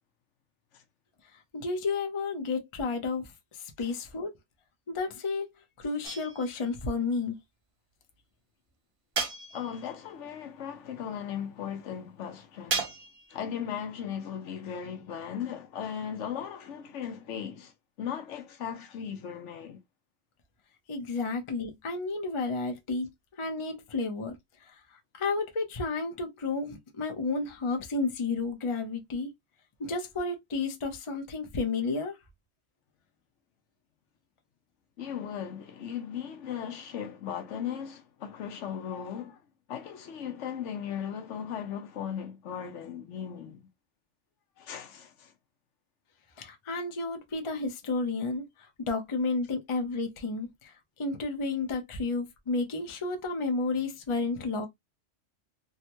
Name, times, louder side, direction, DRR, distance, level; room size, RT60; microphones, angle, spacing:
voice 1, 1.5-4.3 4.9-5.5 5.8-7.4 20.9-23.1 23.4-24.4 24.6-24.8 25.1-29.3 29.8-32.2 46.4-48.4 48.9-50.7 51.0-54.7, left 3 dB, 30° left, 0.6 m, -31 dB
sound 1, 6.0-6.7 9.2-9.9 12.7-13.4, right 4 dB, 45° right, 0.4 m, -34 dB
voice 2, 9.5-12.9 13.3-17.7 18.0-19.8 35.0-39.4 39.7-43.6 44.6-45.3, left 8 dB, 70° left, 1.0 m, -37 dB
3.5 x 2.1 x 2.8 m
omnidirectional pair, 1.3 m